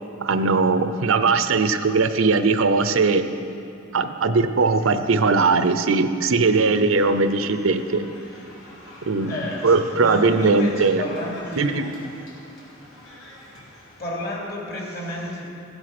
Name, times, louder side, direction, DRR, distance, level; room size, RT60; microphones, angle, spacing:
voice 1, 0.2-3.2 3.9-8.0 9.1-9.3 9.6-11.0 11.6-11.8, right 4 dB, 85° right, 10 dB, 0.6 m, -19 dB
sound 1, 6.5-14.0, left 1 dB, 85° left, 3.4 m, -45 dB
voice 2, 9.3-11.9 14.0-15.5, left 1 dB, 50° left, -2 dB, 2.6 m, -31 dB
15.5 x 8.0 x 6.0 m, 2.7 s
head